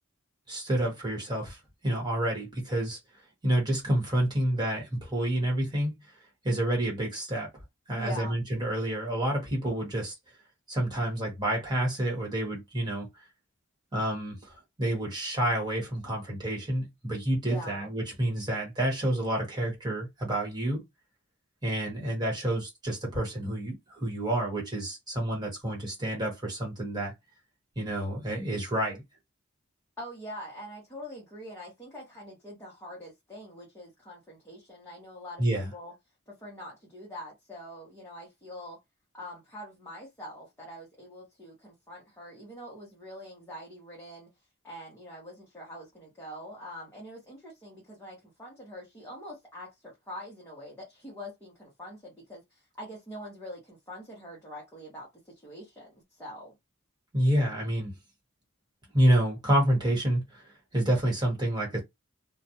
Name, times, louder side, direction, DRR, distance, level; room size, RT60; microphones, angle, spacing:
voice 1, 0.5-3.0 3.4-7.5 7.9-10.1 10.7-13.3 13.9-20.8 21.6-27.1 27.8-29.0 35.4-35.7 57.1-57.9 58.9-61.8, right 1 dB, 20° right, 1.1 m, -29 dB
voice 2, 7.9-8.4 17.5-17.9 30.0-35.4 35.7-35.9 36.3-38.8 39.1-44.3 44.6-56.5, equal, 10° left, 0.8 m, -44 dB
2.4 x 2.1 x 2.7 m
head